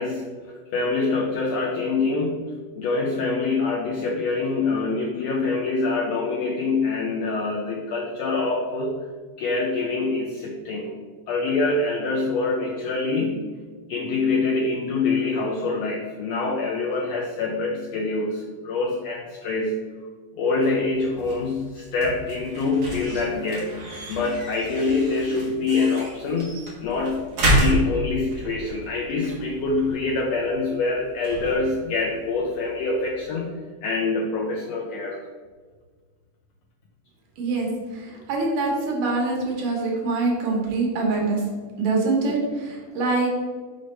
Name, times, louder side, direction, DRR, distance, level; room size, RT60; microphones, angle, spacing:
voice 1, 0.0-2.4 2.8-9.0 9.4-10.9 11.3-13.5 13.9-19.9 20.3-23.7 24.1-26.5 26.8-27.3 27.5-33.5 33.8-35.2, left 3 dB, 80° left, -1 dB, 1.5 m, -25 dB
sound 1, 20.5-33.3, right 1 dB, 50° right, 1.6 m, -30 dB
voice 2, 37.4-37.7 37.9-41.4 41.8-43.3, right 3 dB, 85° right, -1 dB, 3.0 m, -24 dB
6.4 x 5.2 x 3.3 m, 1.5 s
omnidirectional pair, 3.7 m